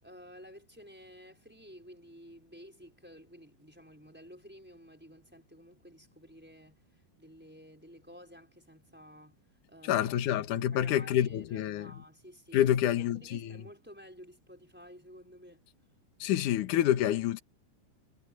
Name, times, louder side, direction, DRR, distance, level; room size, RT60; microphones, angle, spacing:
voice 1, 0.0-6.8 7.2-9.4 9.7-10.1 10.7-15.6, equal, ahead, 4.2 m, -53 dB
voice 2, 9.8-11.9 12.5-13.5 16.2-17.4, left 11 dB, 80° left, 1.8 m, -28 dB
omnidirectional pair, 5.8 m